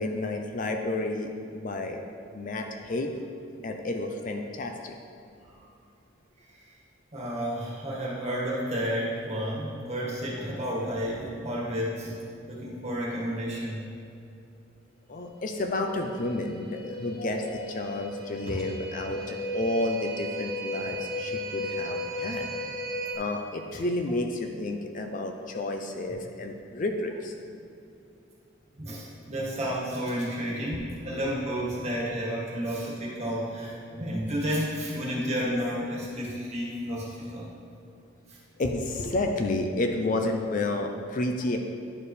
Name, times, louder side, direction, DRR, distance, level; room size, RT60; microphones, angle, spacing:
voice 1, 0.0-2.0 2.3-3.1 3.6-5.0 15.1-22.5 23.1-27.3 30.7-30.8 38.6-41.6, left 2 dB, 40° left, 4 dB, 0.5 m, -31 dB
voice 2, 7.1-12.2 12.4-13.8 18.5-18.6 28.8-37.5 38.3-38.4, equal, 35° right, -5 dB, 1.7 m, -31 dB
sound 1, 15.6-23.2, equal, ahead, 1.6 m, -35 dB
10.5 x 4.7 x 3.2 m, 2.5 s
head